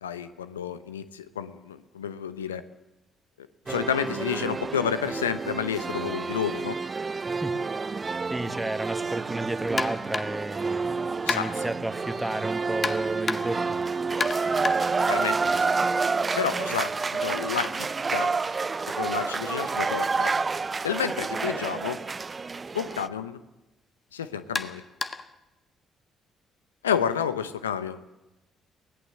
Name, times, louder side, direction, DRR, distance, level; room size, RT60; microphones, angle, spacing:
voice 1, 0.0-2.6 3.4-6.8 11.2-11.6 15.1-15.7 16.4-18.3 19.0-20.3 20.8-22.0 22.7-23.4 24.1-24.8 26.8-28.0, left 8 dB, 85° left, 13 dB, 0.8 m, -30 dB
sound 1, 3.7-23.1, right 4 dB, 35° right, 0.8 m, -29 dB
voice 2, 8.3-13.8, right 2 dB, 10° right, 11 dB, 1.6 m, -32 dB
sound 2, 9.8-10.5 11.3-11.8 12.8-13.7 14.2-16.0 16.3-20.2 21.2-21.4 21.9-22.0 22.9-23.0 24.5-25.4, left 4 dB, 35° left, 1.4 m, -34 dB
23.5 x 17.5 x 7.7 m, 0.97 s
hypercardioid pair, 45°, 0 cm